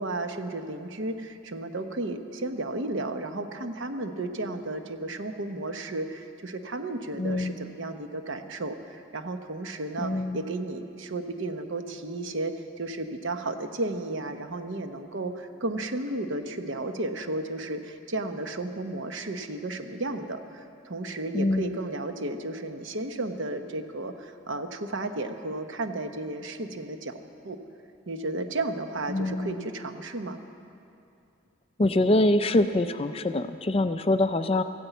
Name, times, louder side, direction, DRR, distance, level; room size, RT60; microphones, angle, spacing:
voice 1, 0.0-27.2 27.4-27.6 28.1-30.4, right 2 dB, 70° right, 7 dB, 0.9 m, -33 dB
voice 2, 7.2-7.6 10.0-10.5 21.3-21.8 29.1-29.6 31.8-34.6, left 1 dB, 30° left, 10 dB, 0.4 m, -24 dB
15.0 x 9.7 x 8.2 m, 2.5 s
head